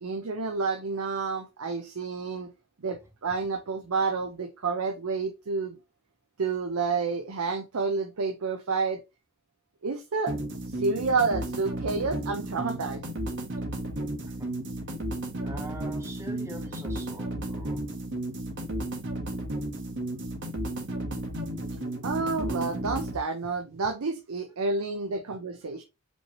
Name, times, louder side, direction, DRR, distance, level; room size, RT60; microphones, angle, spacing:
voice 1, 0.0-2.5 2.8-5.8 6.4-9.0 9.8-10.3 10.7-13.0 22.0-25.8, right 4 dB, 75° right, 0.6 m, -29 dB
sound 1, 10.3-23.2, right 1 dB, 55° right, 1.3 m, -33 dB
voice 2, 15.3-17.9, right 1 dB, 15° right, 0.7 m, -43 dB
5.2 x 3.2 x 2.9 m
head